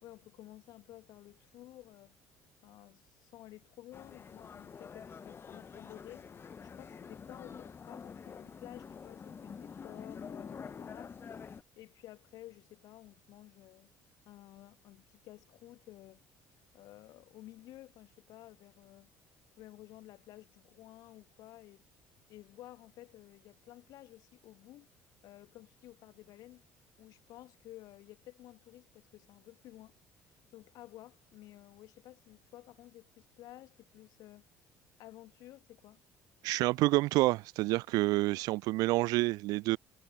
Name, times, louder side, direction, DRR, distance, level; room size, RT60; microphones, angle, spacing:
voice 1, 0.0-2.2 2.6-11.2 11.7-13.9 14.2-16.2 16.7-19.1 19.6-21.8 22.3-24.9 25.2-26.6 27.0-30.0 30.5-34.5 35.0-36.0, left 16 dB, 60° left, 1.7 m, -53 dB
sound 1, 3.9-11.6, left 6 dB, 30° left, 1.0 m, -47 dB
voice 2, 36.4-39.8, right 20 dB, 60° right, 0.4 m, -28 dB
figure-of-eight pair, 55°, 7 cm